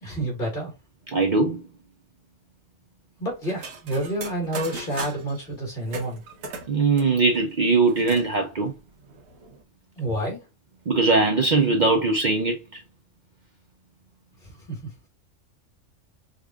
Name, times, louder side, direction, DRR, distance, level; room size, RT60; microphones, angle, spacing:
voice 1, 0.0-0.7 3.2-6.2 10.0-10.4 14.7-14.9, right 1 dB, 40° left, 1.9 m, -29 dB
voice 2, 1.1-1.6 6.7-8.7 10.9-12.8, right 3 dB, 50° right, 0.6 m, -21 dB
sound 1, 3.4-5.4 5.9-8.3 8.7-8.8 9.0-9.6, right 3 dB, 85° right, 1.2 m, -38 dB
5.0 x 2.5 x 2.2 m
omnidirectional pair, 1.3 m